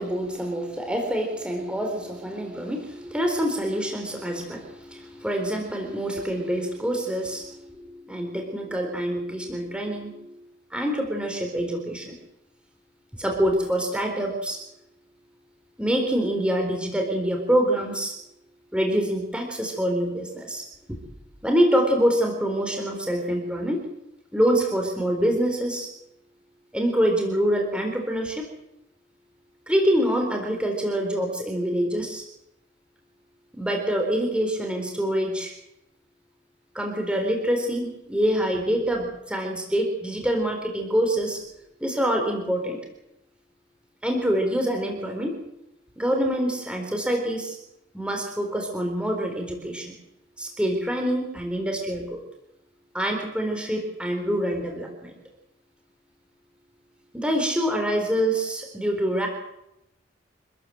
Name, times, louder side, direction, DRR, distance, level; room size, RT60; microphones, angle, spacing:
voice 1, 0.0-10.3 10.7-12.2 13.1-14.6 15.8-18.1 18.7-20.6 21.4-23.8 24.3-25.9 26.7-28.5 29.7-32.2 33.5-35.5 36.7-41.4 41.8-42.8 44.0-45.4 46.0-47.6 47.9-49.9 50.4-52.2 52.9-55.2 57.1-59.3, equal, 5° right, 2 dB, 4.0 m, -25 dB
26.0 x 15.0 x 7.7 m, 0.86 s
head